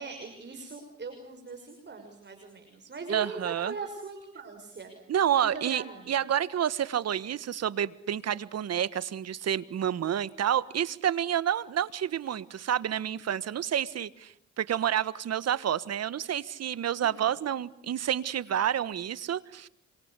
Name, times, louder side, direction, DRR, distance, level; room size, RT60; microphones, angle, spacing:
voice 1, 0.0-4.9 5.3-6.1 17.0-17.2, right 4 dB, 35° right, 5 dB, 6.1 m, -40 dB
voice 2, 3.1-3.7 5.1-19.7, right 10 dB, 55° right, 17 dB, 1.4 m, -29 dB
27.5 x 24.5 x 8.4 m, 0.68 s
cardioid pair, 90°, 30 cm